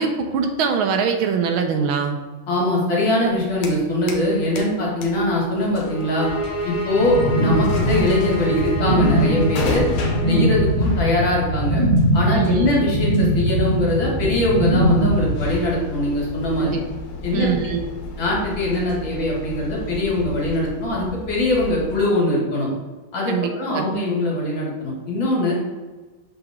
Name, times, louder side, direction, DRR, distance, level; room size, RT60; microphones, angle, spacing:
voice 1, 0.0-2.2 12.3-12.7 16.6-16.8 17.3-17.9 23.3-23.9, right 6 dB, 75° right, 5 dB, 1.4 m, -22 dB
voice 2, 2.5-6.3 6.6-9.9 10.3-11.8 12.1-16.8 17.2-17.5 18.2-22.7 23.1-25.5, left 1 dB, 65° left, -4 dB, 2.5 m, -22 dB
sound 1, 3.2-4.3 4.6-22.0, left 3 dB, 85° left, 1.8 m, -33 dB
sound 2, 5.8-10.7, right 1 dB, 45° left, 1.8 m, -29 dB
sound 3, 6.9-15.5, right 1 dB, 50° right, 0.7 m, -21 dB
6.9 x 4.0 x 3.6 m, 1.3 s
omnidirectional pair, 2.3 m